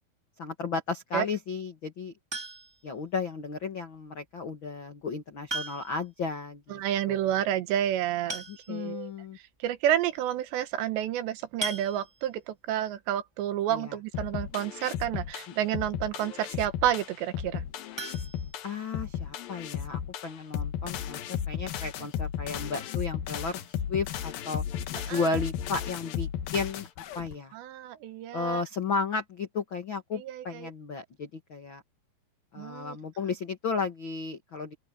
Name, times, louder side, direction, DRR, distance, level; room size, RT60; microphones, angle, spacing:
voice 1, 0.4-2.1 2.8-6.8 7.1-7.3 8.5-9.4 13.7-13.9 18.6-23.6 23.9-24.6 25.1-26.9 27.1-27.5 28.3-31.8 32.5-34.7, left 4 dB, 85° left, 1.1 m, -34 dB
sound 1, 2.3-2.9 4.4-4.5 5.5-6.1 6.4-6.5 6.8-6.9 7.9-8.0 8.3-9.0 9.6-9.7 10.0-10.2 11.6-12.4 17.9-19.1 19.5-19.6 20.0-20.1 20.5-20.6, right 2 dB, 10° right, 1.7 m, -38 dB
voice 2, 6.7-9.1 9.6-17.6 25.1-25.3 27.5-28.6 30.1-30.7 32.6-33.0, right 11 dB, 80° right, 3.4 m, -30 dB
sound 2, 14.1-27.3, left 9 dB, 65° left, 2.7 m, -35 dB
open air
omnidirectional pair, 5.1 m